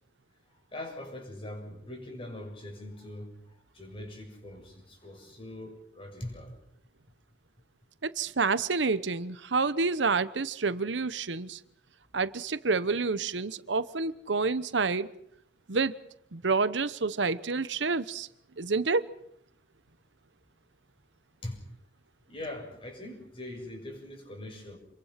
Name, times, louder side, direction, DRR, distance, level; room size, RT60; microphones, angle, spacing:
voice 1, 0.5-6.6 21.4-21.6 22.3-24.8, left 1 dB, 30° left, 3 dB, 7.2 m, -42 dB
voice 2, 8.1-11.6 12.1-15.1 15.7-16.0 16.3-18.3 18.6-19.1, right 4 dB, 85° right, 15 dB, 1.0 m, -28 dB
28.5 x 22.5 x 5.9 m, 0.73 s
head